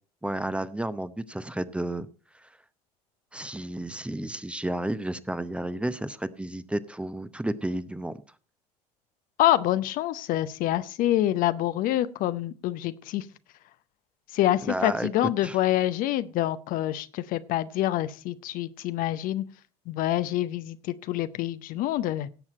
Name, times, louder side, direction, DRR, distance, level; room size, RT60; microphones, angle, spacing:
voice 1, 0.2-2.1 2.3-2.5 3.3-8.2 14.6-15.6, right 1 dB, 5° right, 13 dB, 0.7 m, -32 dB
voice 2, 9.4-13.3 14.3-19.4 19.9-22.3, left 14 dB, 45° left, 14 dB, 0.7 m, -26 dB
17.0 x 7.3 x 4.2 m, 0.37 s
figure-of-eight pair, 70°, 19 cm